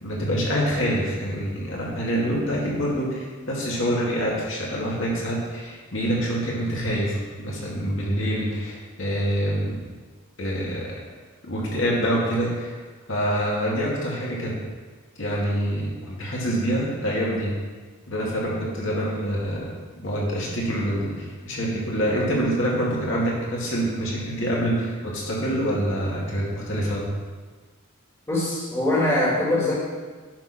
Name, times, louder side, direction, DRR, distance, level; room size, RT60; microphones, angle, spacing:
voice 1, 0.0-9.8 10.4-10.8 11.4-12.8 13.1-14.5 15.2-17.5 18.1-19.7 20.0-27.0, equal, 70° left, -4 dB, 2.3 m, -26 dB
voice 2, 28.3-29.7, left 1 dB, 10° left, -6 dB, 1.7 m, -22 dB
10.0 x 4.3 x 5.9 m, 1.4 s
head